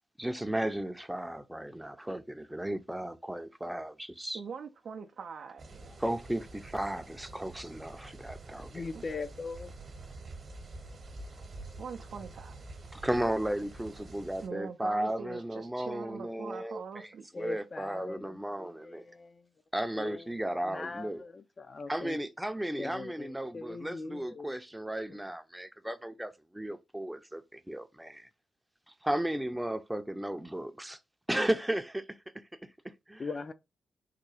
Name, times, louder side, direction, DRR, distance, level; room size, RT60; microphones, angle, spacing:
voice 1, 0.2-4.4 6.0-8.7 12.9-17.1 17.4-19.0 19.7-21.2 21.9-28.3 29.0-31.0 31.3-32.1 33.1-33.2, right 1 dB, 10° right, 0.5 m, -34 dB
voice 2, 4.3-6.0 8.9-9.0 11.8-12.6 14.4-17.3, right 6 dB, 65° right, 0.4 m, -43 dB
sound 1, 5.6-14.5, right 2 dB, 50° right, 0.9 m, -47 dB
voice 3, 8.7-9.7 17.3-19.5 19.9-20.3 20.6-22.2 22.8-24.6 25.1-25.2 33.2-33.5, left 4 dB, 45° left, 0.4 m, -41 dB
3.6 x 2.2 x 3.2 m
supercardioid pair, 55°, 0 cm